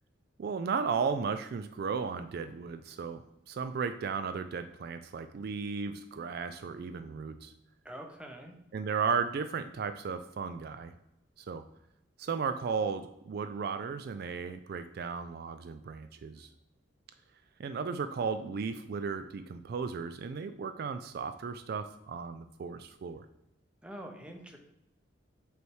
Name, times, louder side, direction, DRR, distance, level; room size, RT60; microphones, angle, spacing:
voice 1, 0.4-3.2 3.5-7.5 8.7-10.9 11.4-11.6 12.2-16.5 17.6-23.3, right 5 dB, 50° right, 10 dB, 0.3 m, -35 dB
voice 2, 7.8-8.5 23.8-24.6, equal, 5° right, 3 dB, 0.7 m, -45 dB
7.9 x 3.2 x 4.7 m, 0.86 s
head